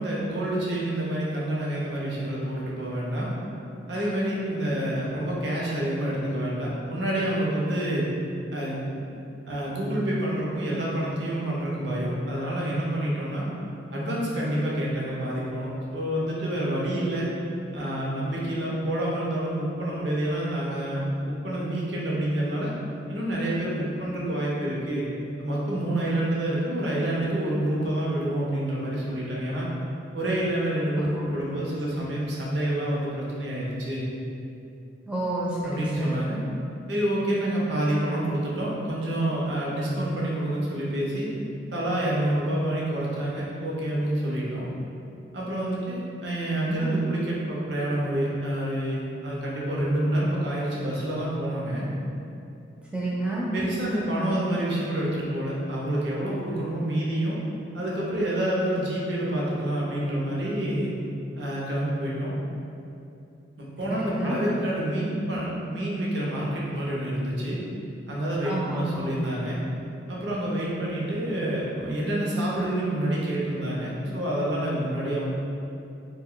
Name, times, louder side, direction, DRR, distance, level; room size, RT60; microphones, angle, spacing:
voice 1, 0.0-3.3 3.9-8.1 8.5-8.8 9.5-13.5 13.9-17.3 17.7-22.7 23.1-25.0 25.4-29.7 30.1-34.0 35.6-36.4 36.9-41.3 41.7-44.7 45.3-51.9 53.5-57.4 57.7-60.9 61.4-62.3 63.6-67.6 68.1-69.6 70.1-75.3, right 1 dB, 65° right, -5 dB, 0.6 m, -28 dB
voice 2, 30.9-31.3 31.9-32.2 35.1-36.2 46.7-46.9 52.9-53.5 63.9-64.4 68.4-69.1, right 1 dB, 5° right, -6 dB, 0.4 m, -30 dB
2.5 x 2.2 x 3.6 m, 2.7 s
head